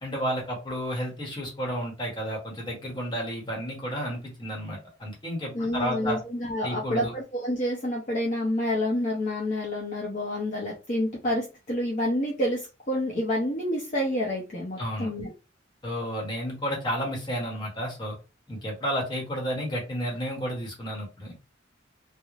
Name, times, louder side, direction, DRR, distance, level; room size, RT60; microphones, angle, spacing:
voice 1, 0.0-6.2 6.6-7.1 14.8-15.1 15.8-18.2 18.5-21.4, equal, 25° left, -1 dB, 0.9 m, -31 dB
voice 2, 5.5-15.3, left 1 dB, 40° left, -3 dB, 0.6 m, -28 dB
3.1 x 2.0 x 2.4 m, 0.30 s
head